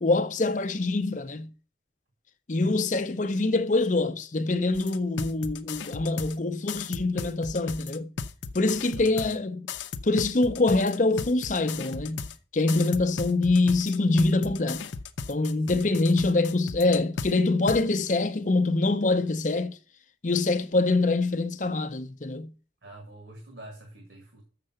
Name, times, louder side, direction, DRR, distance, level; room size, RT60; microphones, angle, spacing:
voice 1, 0.0-1.5 2.5-8.1 8.5-9.6 10.0-12.3 12.5-14.8 15.3-19.8 20.2-22.5, left 2 dB, 40° left, 0.6 m, -25 dB
sound 1, 4.7-6.3 6.7-9.3 9.7-12.3 12.7-17.3 17.7-17.8, left 5 dB, 85° left, 0.6 m, -35 dB
voice 2, 9.0-9.3 15.6-15.7 16.1-16.2 22.8-24.4, right 1 dB, 75° right, 1.9 m, -46 dB
6.7 x 6.6 x 7.6 m
head